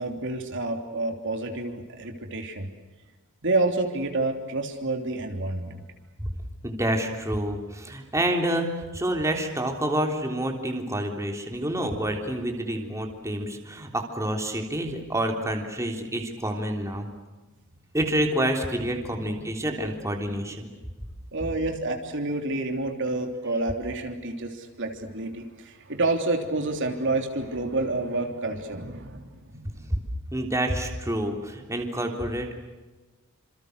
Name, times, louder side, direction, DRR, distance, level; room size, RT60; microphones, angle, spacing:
voice 1, 0.0-2.7 3.4-5.8 19.4-19.5 21.3-29.9, right 2 dB, 55° right, 5 dB, 3.2 m, -29 dB
voice 2, 6.6-17.1 17.9-20.7 29.9-30.0 30.3-32.5, right 1 dB, 15° right, 3 dB, 3.5 m, -28 dB
28.5 x 27.5 x 6.7 m, 1.2 s
head